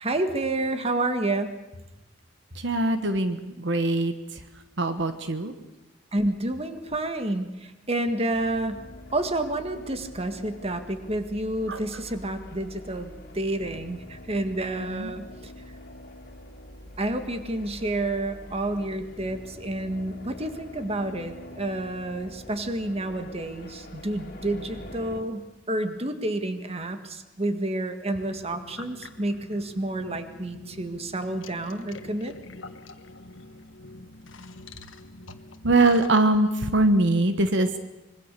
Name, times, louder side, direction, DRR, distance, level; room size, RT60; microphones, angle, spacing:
voice 1, 0.0-1.5 6.1-8.8 9.1-15.5 17.0-32.3, right 1 dB, 30° right, 8 dB, 1.8 m, -29 dB
voice 2, 2.5-4.4 4.8-5.5 11.7-11.8 14.8-15.1 35.6-37.8, right 2 dB, 70° right, 9 dB, 1.3 m, -23 dB
sound 1, 8.3-25.2, left 1 dB, 50° left, 2.9 m, -45 dB
sound 2, 28.2-36.1, left 3 dB, 90° left, 1.4 m, -45 dB
25.5 x 22.5 x 6.8 m, 0.99 s
head